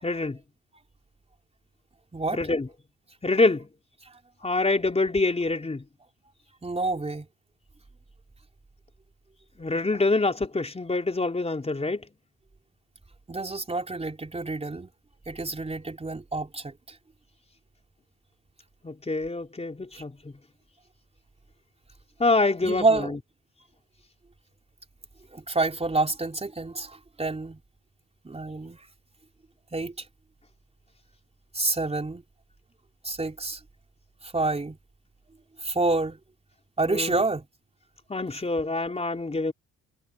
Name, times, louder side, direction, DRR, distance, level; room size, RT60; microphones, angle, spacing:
voice 1, 0.0-0.4 2.3-2.7 3.2-3.7 4.4-5.8 9.6-12.0 18.8-20.3 22.2-23.2 36.9-37.2 38.1-39.5, left 3 dB, 20° left, 4.1 m, -26 dB
voice 2, 6.6-7.3 13.3-14.9 15.3-16.7 22.6-23.1 25.3-27.6 28.2-28.8 29.7-29.9 31.5-32.2 33.0-33.6 34.2-34.8 35.6-36.2 36.8-37.4, right 3 dB, 20° right, 3.9 m, -28 dB
cardioid pair, 90°, 30 cm